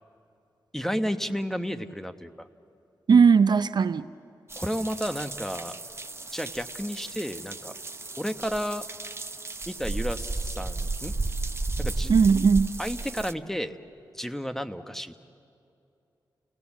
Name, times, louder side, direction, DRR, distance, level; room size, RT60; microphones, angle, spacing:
voice 1, 0.7-2.5 4.6-5.8 6.3-7.8 8.2-8.9 9.7-11.1 11.8-12.1 12.8-13.7 14.1-15.1, equal, 5° left, 9 dB, 1.1 m, -32 dB
voice 2, 3.1-4.1 12.1-12.7, right 5 dB, 60° right, 12 dB, 0.5 m, -18 dB
sound 1, 4.5-13.3, right 3 dB, 30° right, 0.9 m, -34 dB
30.0 x 17.5 x 7.2 m, 2.6 s
cardioid pair, 50°, 8 cm